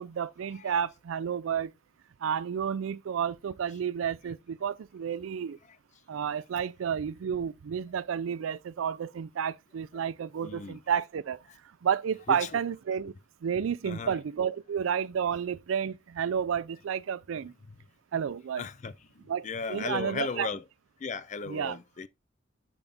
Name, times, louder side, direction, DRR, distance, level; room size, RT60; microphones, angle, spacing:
voice 1, 0.0-1.7 2.2-5.6 6.1-11.4 11.8-13.1 13.4-17.5 18.1-18.6 19.3-20.5 21.5-21.8, right 7 dB, 80° right, 0.4 m, -31 dB
voice 2, 10.4-10.8 12.3-12.6 13.8-14.2 17.7-17.8 18.6-18.9 19.4-20.7 21.0-22.1, left 4 dB, 35° left, 0.4 m, -36 dB
6.8 x 3.5 x 3.9 m
head